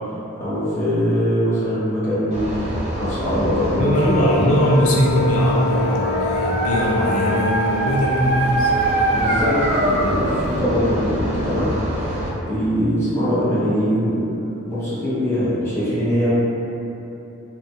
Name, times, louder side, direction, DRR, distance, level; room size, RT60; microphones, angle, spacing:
voice 1, 0.4-2.5 2.9-4.3 9.1-11.7 12.5-14.2 14.7-16.3, equal, 10° left, -13 dB, 0.8 m, -22 dB
sound 1, 2.3-12.3, left 1 dB, 30° right, 0.4 m, -26 dB
voice 2, 3.8-8.7, equal, 80° left, -4 dB, 0.5 m, -20 dB
Dog, 5.4-10.5, right 2 dB, 90° right, 0.5 m, -23 dB
2.8 x 2.2 x 2.7 m, 2.9 s
head